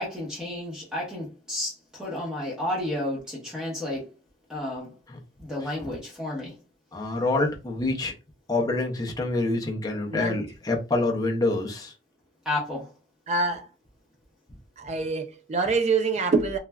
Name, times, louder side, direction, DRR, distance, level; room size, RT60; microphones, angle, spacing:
voice 1, 0.0-4.1 4.5-4.9 5.4-6.5 12.4-12.9, left 1 dB, 5° right, 0.8 m, -31 dB
voice 2, 6.9-8.1 8.5-11.9, left 2 dB, 20° left, 0.5 m, -26 dB
voice 3, 13.3-13.7 14.8-16.6, right 4 dB, 40° right, 0.4 m, -25 dB
3.2 x 2.4 x 2.2 m
head